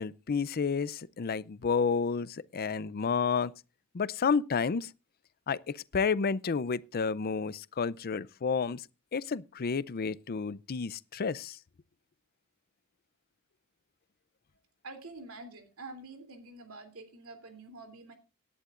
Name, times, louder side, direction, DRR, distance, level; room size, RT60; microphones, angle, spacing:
voice 1, 0.0-3.5 3.9-4.9 5.5-8.9 9.1-11.6, left 5 dB, 45° left, 0.5 m, -30 dB
voice 2, 14.8-18.1, right 2 dB, 70° right, 3.0 m, -47 dB
18.0 x 11.0 x 2.5 m
head